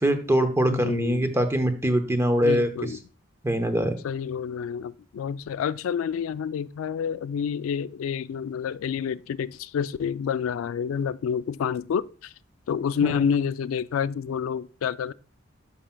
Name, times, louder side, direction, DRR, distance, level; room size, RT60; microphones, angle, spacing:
voice 1, 0.0-2.7 3.4-4.0 13.0-13.1, equal, 15° right, 0.8 m, -23 dB
voice 2, 0.7-1.4 2.4-3.0 4.0-12.3 12.7-15.1, left 7 dB, 90° left, 0.3 m, -28 dB
11.0 x 5.7 x 2.2 m
head